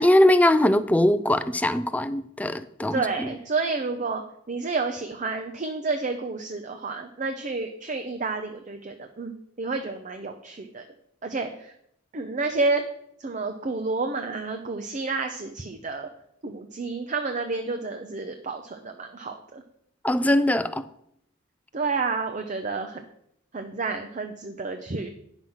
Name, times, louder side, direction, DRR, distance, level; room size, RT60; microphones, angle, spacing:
voice 1, 0.0-3.3 20.0-20.8, left 1 dB, 5° left, 12 dB, 0.4 m, -21 dB
voice 2, 2.9-4.2 4.5-10.8 11.2-11.7 12.1-12.8 13.2-16.1 16.4-19.6 21.7-23.0 23.5-25.1, right 3 dB, 35° right, 6 dB, 0.6 m, -30 dB
9.3 x 6.1 x 5.6 m, 0.74 s
head